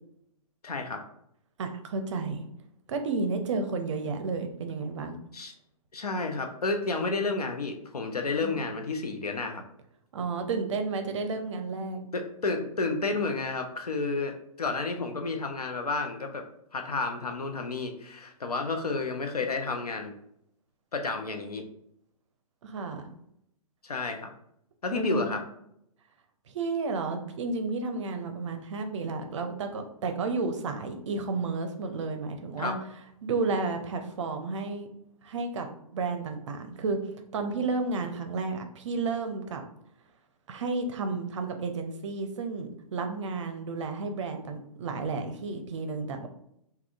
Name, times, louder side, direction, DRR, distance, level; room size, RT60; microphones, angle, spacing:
voice 1, 0.6-1.0 5.3-5.5 5.9-9.6 12.1-16.4 16.7-20.1 20.9-21.6 23.8-24.3 24.8-25.4 32.6-32.8, left 3 dB, 80° left, 5 dB, 0.6 m, -31 dB
voice 2, 1.6-2.4 2.9-5.2 8.4-8.6 10.1-12.1 22.6-23.1 24.9-25.4 26.5-32.8 33.2-34.9 35.2-37.0 37.3-39.6 40.5-46.3, right 3 dB, 50° right, 6 dB, 0.5 m, -32 dB
3.4 x 2.3 x 2.3 m, 0.74 s
figure-of-eight pair, 120°, 19 cm